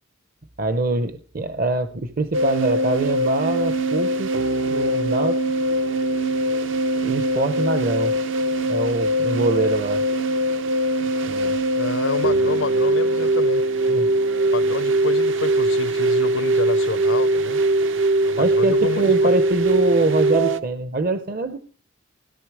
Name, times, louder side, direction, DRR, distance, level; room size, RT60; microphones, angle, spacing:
voice 1, 0.6-4.3 4.7-5.4 7.0-8.1 8.7-10.0 11.3-11.6 13.9-14.1 18.4-21.6, right 2 dB, 45° right, 0.8 m, -24 dB
sound 1, 2.3-20.6, right 1 dB, 75° right, 0.9 m, -21 dB
voice 2, 11.8-13.6 14.5-17.6 18.2-19.3, left 5 dB, 70° left, 0.6 m, -29 dB
17.0 x 12.0 x 4.8 m
head